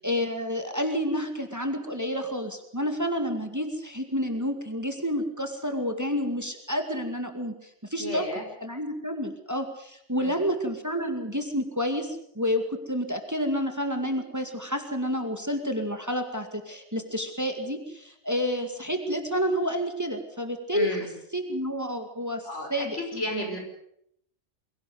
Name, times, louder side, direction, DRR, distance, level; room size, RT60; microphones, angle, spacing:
voice 1, 0.0-8.2 8.6-20.9 21.3-23.0, equal, 15° right, 6 dB, 2.1 m, -29 dB
voice 2, 8.0-8.5 10.1-10.4 20.7-21.1 22.4-23.6, left 1 dB, 75° left, 3 dB, 5.9 m, -33 dB
22.5 x 17.0 x 8.0 m, 0.72 s
omnidirectional pair, 1.2 m